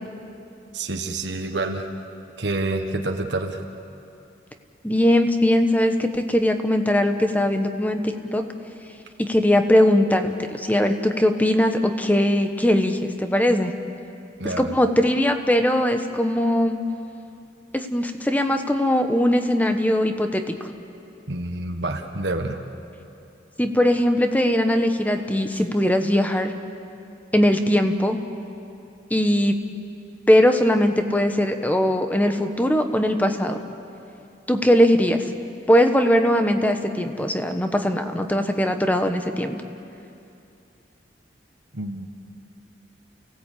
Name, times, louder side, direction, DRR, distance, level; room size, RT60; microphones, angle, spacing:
voice 1, 0.7-1.9 2.4-3.7 14.4-14.8 21.3-22.6 41.7-42.1, right 2 dB, 80° right, 4 dB, 1.5 m, -28 dB
voice 2, 4.8-8.4 9.2-13.7 14.6-16.8 17.7-20.7 23.6-26.5 27.3-28.2 29.1-29.5 30.3-33.6 34.5-35.3 35.7-39.6, left 1 dB, 10° left, 6 dB, 1.2 m, -20 dB
29.0 x 17.0 x 8.4 m, 2.7 s
head